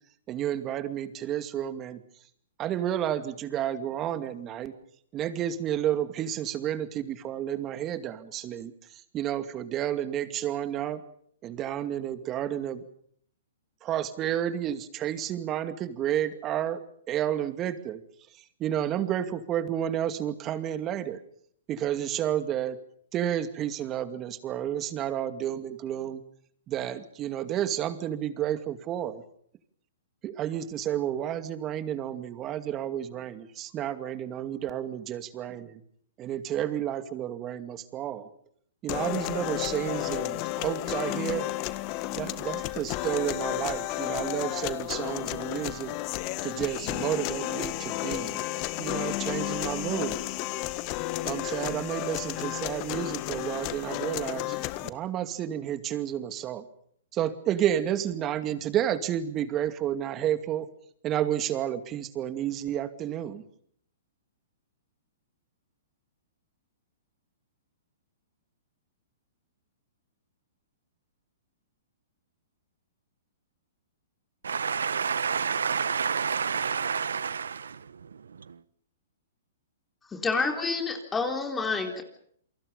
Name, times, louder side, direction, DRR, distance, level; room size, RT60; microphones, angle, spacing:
voice 1, 0.3-2.0 2.6-4.7 5.1-11.0 11.4-12.8 13.8-16.8 17.1-18.0 18.6-21.2 21.7-22.8 23.1-26.2 26.7-29.2 30.2-35.8 36.2-38.3 38.8-41.5 42.1-45.9 46.4-48.4 48.8-50.2 51.2-54.6 54.8-56.6 57.1-60.7 61.0-63.4, right 11 dB, 30° right, 2.3 m, -31 dB
sound 1, 38.9-54.9, left 17 dB, 40° left, 1.6 m, -32 dB
voice 2, 74.4-78.6, right 6 dB, 85° right, 1.1 m, -29 dB
voice 3, 80.1-82.0, left 4 dB, 15° left, 3.7 m, -28 dB
29.0 x 23.5 x 5.5 m
hypercardioid pair, 130°, 0 cm